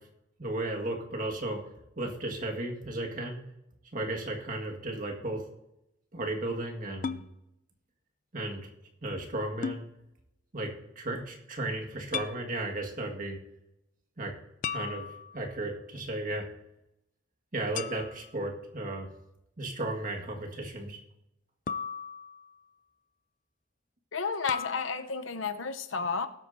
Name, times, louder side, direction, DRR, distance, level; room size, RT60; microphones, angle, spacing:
voice 1, 0.4-1.6 2.0-3.4 3.9-5.4 6.1-7.2 8.3-8.6 9.0-9.8 10.5-10.7 10.9-13.4 14.2-14.3 14.7-15.0 15.3-16.4 17.5-19.1 19.6-21.0, right 2 dB, 45° right, 1 dB, 1.7 m, -34 dB
sound 1, 7.0-7.3 9.6-9.8 12.1-12.4 14.6-15.5 17.7-18.4 21.7-22.6 24.5-24.9, left 6 dB, 40° left, 0.4 m, -36 dB
voice 2, 24.1-26.3, left 5 dB, 80° left, 10 dB, 0.8 m, -32 dB
19.0 x 8.4 x 2.7 m, 0.86 s
head